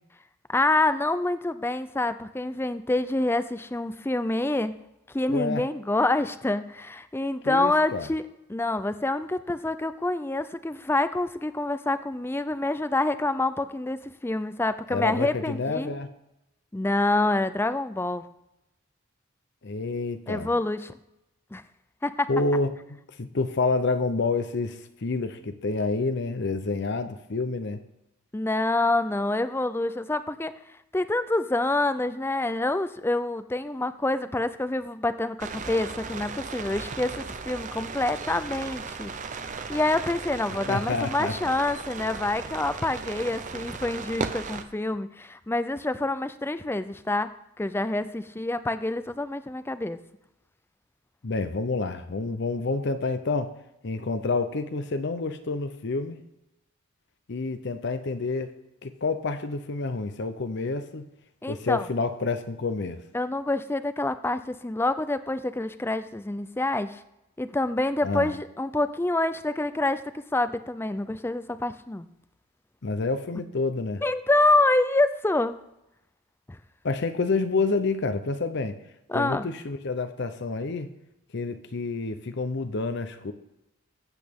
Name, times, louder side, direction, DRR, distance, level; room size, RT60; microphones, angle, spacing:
voice 1, 0.5-4.8 5.1-8.2 8.5-15.9 16.7-18.2 20.3-20.9 21.5-21.6 22.0-22.3 28.3-30.5 30.9-39.1 39.7-47.3 47.6-50.0 61.4-61.9 63.1-67.0 67.4-70.0 70.3-72.1 74.0-75.6 76.5-76.6 79.1-79.5, left 2 dB, 10° left, 13 dB, 0.4 m, -27 dB
voice 2, 5.3-5.7 7.4-8.1 14.9-16.1 19.6-20.5 22.3-27.8 40.7-41.3 51.2-53.5 53.8-56.2 57.3-58.5 58.8-61.1 61.5-63.0 68.0-68.3 72.8-74.0 76.8-78.8 79.1-80.9 81.3-83.3, left 3 dB, 55° left, 10 dB, 0.7 m, -28 dB
sound 1, 35.4-44.6, right 4 dB, 35° right, 0.7 m, -36 dB
15.0 x 8.2 x 3.6 m, 0.89 s
head